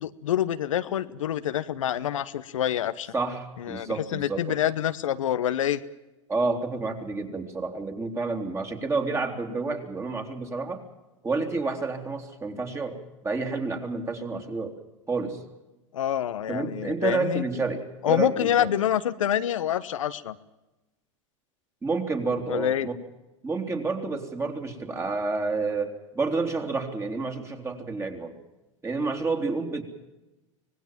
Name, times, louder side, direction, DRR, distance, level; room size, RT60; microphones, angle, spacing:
voice 1, 0.0-3.1 3.6-5.8 15.9-17.4 18.0-20.4 22.5-22.9, left 10 dB, 80° left, 12 dB, 1.1 m, -27 dB
voice 2, 3.1-4.6 6.3-10.8 11.2-14.8 15.1-15.4 16.5-18.7 21.8-22.9 23.4-28.4 28.8-29.8, right 3 dB, 15° right, 5 dB, 3.4 m, -29 dB
25.5 x 19.0 x 7.5 m, 1.0 s
hypercardioid pair, 100°, 16 cm